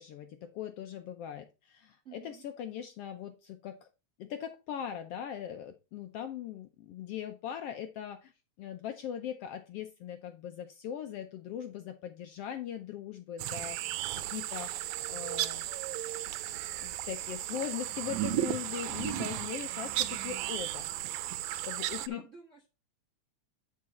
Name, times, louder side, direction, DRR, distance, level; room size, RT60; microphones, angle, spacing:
voice 1, 0.0-3.9 4.2-8.3 8.6-15.7 16.8-20.9 21.7-22.2, left 10 dB, 75° left, 1.4 m, -40 dB
voice 2, 2.0-2.4 19.1-19.6 22.0-22.7, right 6 dB, 45° right, 1.0 m, -51 dB
sound 1, 13.4-22.1, right 15 dB, 85° right, 1.9 m, -35 dB
9.7 x 4.8 x 4.1 m
omnidirectional pair, 3.3 m